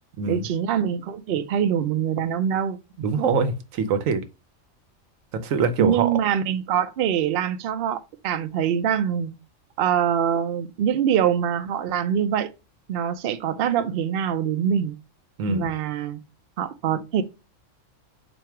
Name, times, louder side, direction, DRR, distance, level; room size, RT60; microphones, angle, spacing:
voice 1, 0.3-2.8 5.8-9.3 9.8-12.5 12.9-14.9 15.5-16.2 16.6-17.2, right 9 dB, 60° right, 0.6 m, -24 dB
voice 2, 3.0-4.2 5.4-6.1 15.4-15.7, right 5 dB, 85° right, 1.1 m, -23 dB
4.4 x 2.6 x 4.7 m
omnidirectional pair, 1.4 m